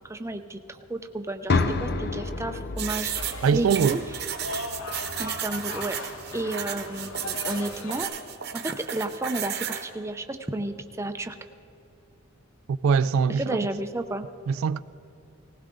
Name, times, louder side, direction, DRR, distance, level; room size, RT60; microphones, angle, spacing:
voice 1, 0.1-4.0 5.2-6.0 6.3-8.1 8.5-11.4 13.4-14.3, right 1 dB, 15° right, 0.6 m, -32 dB
sound 1, 1.5-5.5, left 3 dB, 50° left, 0.7 m, -30 dB
sound 2, 2.8-9.9, right 9 dB, 50° right, 1.0 m, -33 dB
sound 3, 3.1-8.0, left 2 dB, 75° left, 1.3 m, -38 dB
voice 2, 3.4-4.0 12.7-13.6 14.5-14.8, right 6 dB, 75° right, 0.3 m, -22 dB
19.5 x 16.0 x 3.8 m
head